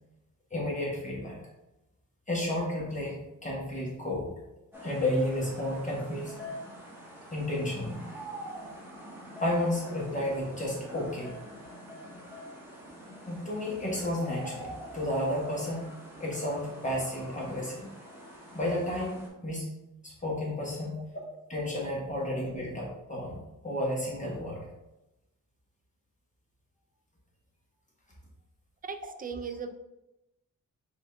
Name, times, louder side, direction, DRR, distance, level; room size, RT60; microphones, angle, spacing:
voice 1, 0.5-1.4 2.3-4.3 4.8-6.5 7.3-8.1 9.4-11.3 13.3-15.9 16.2-17.9 18.5-19.7 20.0-21.0 21.5-24.6, left 1 dB, 25° left, -4 dB, 1.1 m, -32 dB
sound 1, 4.7-19.3, equal, 5° right, 1.1 m, -45 dB
voice 2, 28.8-29.7, right 5 dB, 25° right, 8 dB, 0.3 m, -38 dB
4.9 x 2.5 x 3.4 m, 0.95 s
wide cardioid pair, 115°, 32 cm